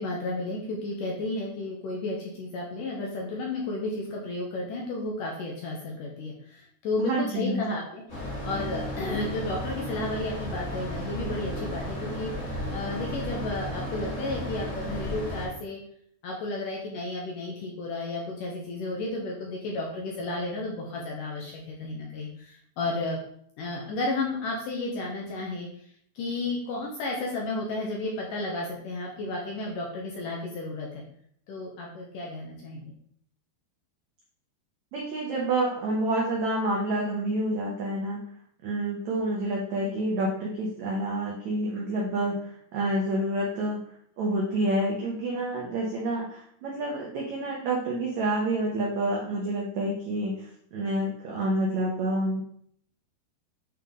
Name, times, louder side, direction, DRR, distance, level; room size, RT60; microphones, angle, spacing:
voice 1, 0.0-8.0 8.4-12.3 12.7-15.8 16.2-23.2 23.6-25.7 26.2-31.0 31.5-32.9, left 2 dB, 70° left, -2 dB, 2.2 m, -32 dB
voice 2, 7.0-7.6 34.9-38.2 38.6-43.8 44.2-52.4, right 1 dB, 75° right, -3 dB, 1.7 m, -28 dB
sound 1, 8.1-15.5, equal, 30° left, 1.4 m, -34 dB
8.8 x 3.6 x 3.7 m, 0.65 s
omnidirectional pair, 4.7 m